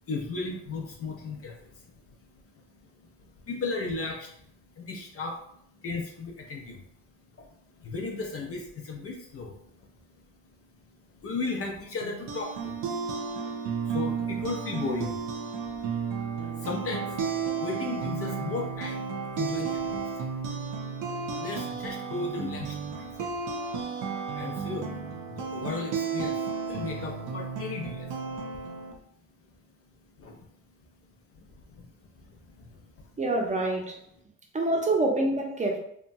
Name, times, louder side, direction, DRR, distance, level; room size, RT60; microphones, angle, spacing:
voice 1, 0.1-2.0 3.0-4.3 4.8-5.4 5.8-6.8 7.4-7.5 7.7-9.8 11.1-12.8 13.8-15.2 16.4-17.2 17.6-20.3 21.4-23.3 24.3-25.0 25.3-28.1 30.2-30.4 31.3-31.9 32.1-32.9, left 3 dB, 50° left, 0.6 m, -35 dB
sound 1, 12.0-28.9, right 5 dB, 90° right, 0.6 m, -33 dB
voice 2, 33.2-34.0 34.5-35.8, right 2 dB, 25° right, 0.6 m, -26 dB
2.9 x 2.2 x 2.6 m
cardioid pair, 90°, 30 cm